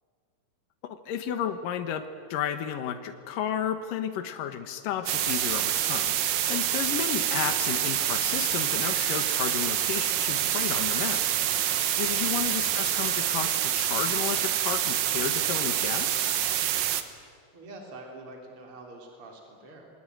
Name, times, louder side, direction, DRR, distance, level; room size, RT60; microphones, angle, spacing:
voice 1, 0.9-2.0 2.3-16.2, left 9 dB, 80° left, 8 dB, 3.0 m, -33 dB
sound 1, 5.1-17.0, right 11 dB, 85° right, 2.9 m, -27 dB
voice 2, 17.5-19.9, right 2 dB, 40° right, 1 dB, 4.3 m, -45 dB
28.0 x 23.0 x 9.3 m, 2.2 s
omnidirectional pair, 3.9 m